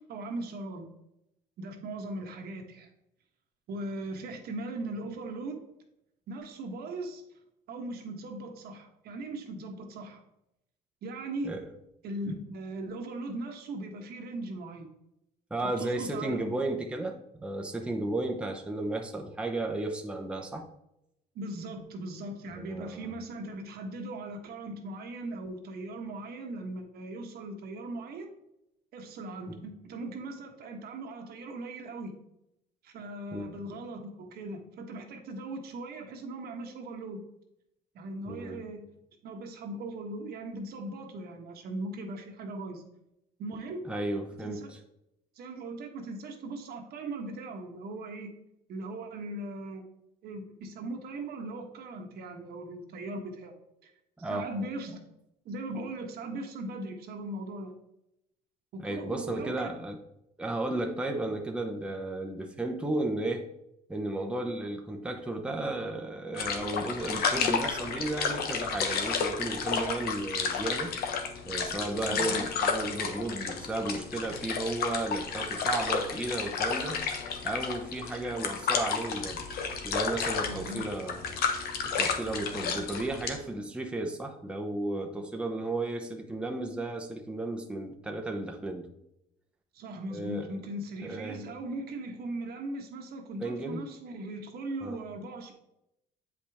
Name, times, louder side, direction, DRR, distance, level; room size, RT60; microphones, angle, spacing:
voice 1, 0.1-0.9 1.6-2.9 3.7-5.6 6.3-7.2 7.7-10.2 11.0-11.5 12.0-14.9 15.6-16.4 21.3-28.3 28.9-32.2 32.8-37.2 37.9-38.8 39.2-42.8 43.4-43.9 44.4-44.7 45.3-48.3 48.7-49.8 50.2-53.5 53.8-53.9 54.2-55.0 55.4-57.7 58.7-59.7 72.1-72.5 80.4-80.9 89.7-95.5, right 2 dB, 70° right, 4 dB, 1.2 m, -39 dB
voice 2, 15.5-20.7 22.6-23.1 33.3-33.5 38.3-38.6 43.9-44.6 54.2-54.5 58.8-60.0 60.4-63.4 63.9-70.9 71.4-77.0 77.4-79.4 79.8-81.4 81.8-88.9 90.1-90.5 91.0-91.4 93.4-93.8 94.8-95.0, right 2 dB, 5° right, 2 dB, 0.8 m, -34 dB
sound 1, 66.3-83.4, left 5 dB, 65° left, 1.1 m, -32 dB
8.2 x 5.1 x 3.5 m, 0.83 s
cardioid pair, 110°, 17 cm